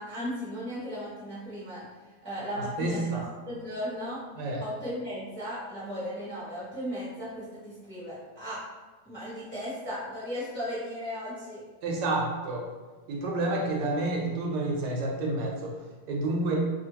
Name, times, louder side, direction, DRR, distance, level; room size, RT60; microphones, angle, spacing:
voice 1, 0.0-1.8 2.2-3.1 3.5-4.2 4.6-8.6 9.0-11.6, equal, 10° left, -11 dB, 1.0 m, -36 dB
voice 2, 2.8-3.3 4.4-4.6 11.8-12.7 13.1-15.7 16.1-16.6, right 2 dB, 80° right, -1 dB, 1.2 m, -29 dB
2.7 x 2.7 x 2.8 m, 1.3 s
omnidirectional pair, 1.8 m